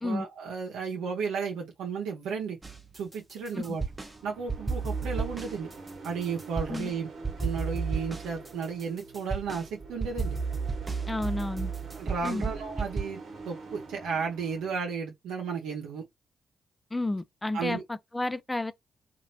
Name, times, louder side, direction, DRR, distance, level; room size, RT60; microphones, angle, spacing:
voice 1, 0.0-2.6 3.0-3.8 4.2-5.7 6.0-7.1 7.4-10.4 12.0-16.0 17.5-17.8, right 5 dB, 90° right, 0.8 m, -34 dB
sound 1, 2.6-4.1 4.5-6.9 7.2-13.0, right 4 dB, 20° right, 0.8 m, -33 dB
sound 2, 3.7-14.8, right 3 dB, 60° right, 1.2 m, -45 dB
voice 2, 11.1-11.7 12.2-12.5 16.9-18.7, left 2 dB, 15° left, 0.4 m, -31 dB
3.0 x 2.5 x 2.7 m
cardioid pair, 65°, 0 cm